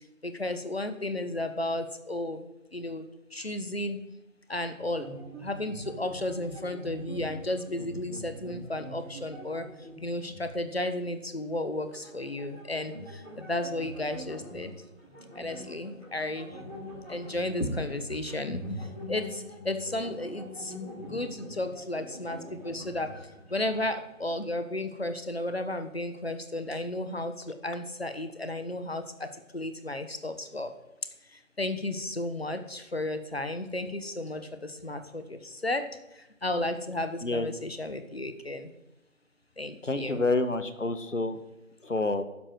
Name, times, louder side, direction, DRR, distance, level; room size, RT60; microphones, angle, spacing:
voice 1, 0.2-4.0 4.5-5.1 5.4-9.6 10.0-14.7 15.3-16.6 17.1-18.6 19.1-20.7 21.0-23.1 23.5-30.7 31.3-35.9 36.2-38.7 39.6-40.2, left 1 dB, 45° left, 9 dB, 1.3 m, -33 dB
sound 1, 4.7-10.5 10.8-10.9 11.9-24.2, equal, 10° left, 4.0 m, -43 dB
voice 2, 39.8-41.4 41.8-42.2, left 2 dB, 60° left, 11 dB, 1.4 m, -28 dB
11.5 x 10.0 x 6.1 m, 0.97 s
figure-of-eight pair, 175°, 42 cm